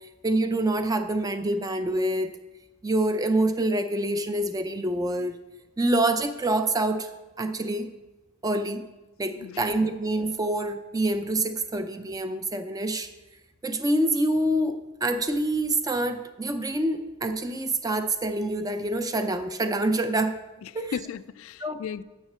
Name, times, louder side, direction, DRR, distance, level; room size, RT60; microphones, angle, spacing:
voice 1, 0.2-2.3 2.8-5.4 5.8-7.1 7.4-7.9 8.4-8.9 9.2-13.1 13.6-20.4 20.7-20.9 21.6-21.8, right 1 dB, 20° right, 0.5 m, -26 dB
voice 2, 20.6-22.0, left 7 dB, 75° left, 0.3 m, -36 dB
6.5 x 6.3 x 7.4 m
head